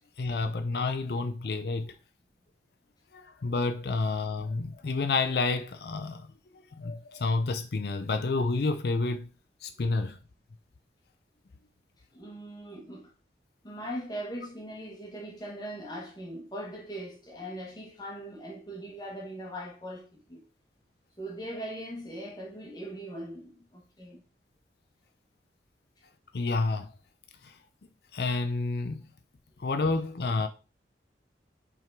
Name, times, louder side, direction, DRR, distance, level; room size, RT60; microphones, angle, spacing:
voice 1, 0.2-1.9 3.1-6.2 6.8-9.3 9.6-10.2 26.3-26.9 27.4-27.5 28.1-29.1 29.6-30.5, left 3 dB, 65° left, 0.5 m, -29 dB
voice 2, 12.1-13.1 13.6-20.4 21.2-24.2, right 1 dB, 20° left, 1.2 m, -40 dB
5.8 x 3.7 x 4.4 m
head